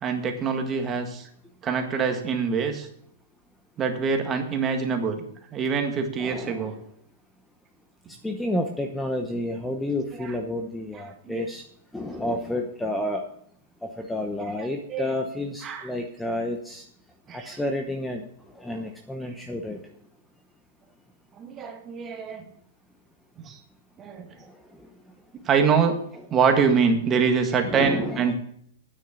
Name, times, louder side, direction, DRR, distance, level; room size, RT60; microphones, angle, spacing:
voice 1, 0.0-1.3 1.6-2.9 3.8-5.2 5.5-6.7 11.2-11.4 14.6-15.1 15.6-15.8 17.3-17.5 21.4-22.4 23.4-23.6 24.0-24.3 25.4-26.0 26.3-28.3, right 5 dB, 20° right, 5 dB, 1.7 m, -24 dB
voice 2, 6.2-6.8 8.2-11.6 11.9-13.2 13.8-16.8 17.3-18.2 18.5-19.8 24.4-24.5 27.6-28.3, left 1 dB, 5° left, 3 dB, 0.9 m, -30 dB
9.4 x 6.5 x 8.3 m, 0.66 s
hypercardioid pair, 150°, 0 cm